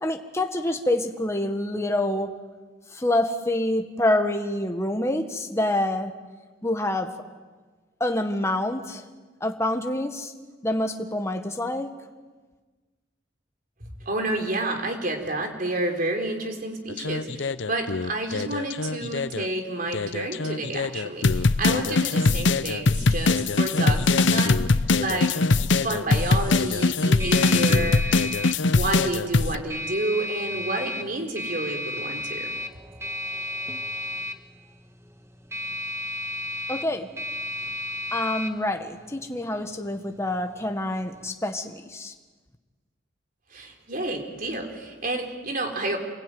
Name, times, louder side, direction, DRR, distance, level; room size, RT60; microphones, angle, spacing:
voice 1, 0.0-2.3 2.9-6.1 6.6-7.1 8.0-9.0 9.4-10.3 10.6-11.9 36.7-37.1 38.1-42.1, left 1 dB, 15° left, 4 dB, 1.5 m, -26 dB
voice 2, 13.8-25.3 25.8-28.0 28.7-32.5 43.5-46.0, right 2 dB, 50° right, 3 dB, 4.3 m, -30 dB
sound 1, 16.9-19.5 19.9-29.6, left 3 dB, 70° left, 0.8 m, -22 dB
sound 2, 24.8-41.3, left 1 dB, 15° right, 1.5 m, -35 dB
28.5 x 22.0 x 9.3 m, 1.3 s
head